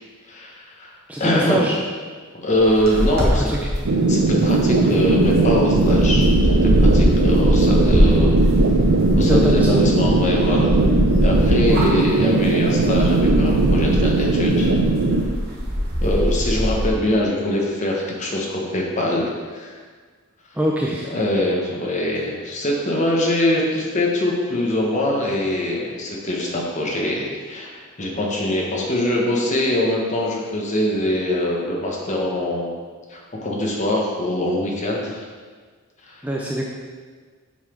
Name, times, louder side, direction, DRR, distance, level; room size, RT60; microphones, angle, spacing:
voice 1, 0.3-0.9 1.2-1.6 2.4-3.5 4.1-8.4 9.2-10.8 11.2-14.7 16.0-19.8 21.1-32.7 33.1-35.2 36.0-36.2, left 1 dB, 35° left, -2 dB, 1.1 m, -23 dB
voice 2, 1.1-1.7 3.2-3.6 9.3-9.8 11.7-12.0 20.6-21.1 36.2-36.6, right 1 dB, 5° right, -2 dB, 0.5 m, -23 dB
sound 1, 2.5-16.9, equal, 45° right, 1.3 m, -22 dB
sound 2, 3.9-15.2, right 3 dB, 80° right, 0.6 m, -18 dB
7.2 x 4.1 x 5.0 m, 1.5 s
head